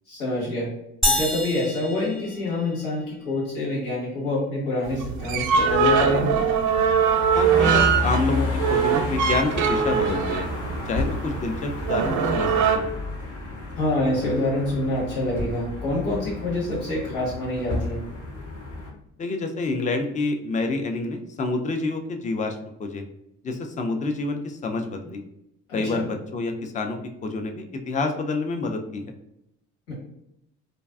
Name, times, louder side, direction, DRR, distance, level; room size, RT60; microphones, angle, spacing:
voice 1, 0.1-0.7 1.0-6.3 13.8-18.0 25.7-26.0 29.9-30.0, left 1 dB, 80° left, -5 dB, 1.2 m, -26 dB
sound 1, 1.0-3.0, left 1 dB, ahead, 0.9 m, -27 dB
sound 2, 4.8-12.8, right 6 dB, 55° right, 0.5 m, -22 dB
sound 3, 7.3-18.9, left 2 dB, 60° left, 0.8 m, -31 dB
voice 2, 7.3-10.5 10.9-12.9 19.2-23.0 23.4-25.2 25.7-29.1, left 3 dB, 20° left, 5 dB, 0.4 m, -28 dB
2.5 x 2.2 x 2.3 m, 0.81 s
hypercardioid pair, 60°, 35 cm